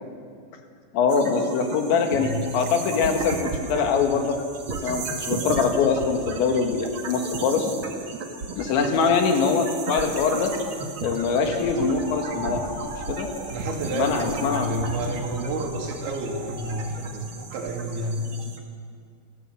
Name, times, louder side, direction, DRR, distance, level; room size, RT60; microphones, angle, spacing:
voice 1, 0.9-4.4 4.8-7.7 8.6-10.5 11.0-12.7 13.1-13.3 13.9-14.9, left 5 dB, 80° left, 4 dB, 4.1 m, -23 dB
sound 1, 1.1-18.6, right 3 dB, 55° right, 1.4 m, -35 dB
sound 2, 11.4-16.8, right 2 dB, ahead, 7.0 m, -39 dB
voice 2, 13.5-18.3, right 1 dB, 85° right, 1 dB, 4.9 m, -30 dB
28.0 x 15.0 x 7.7 m, 2.3 s
omnidirectional pair, 5.2 m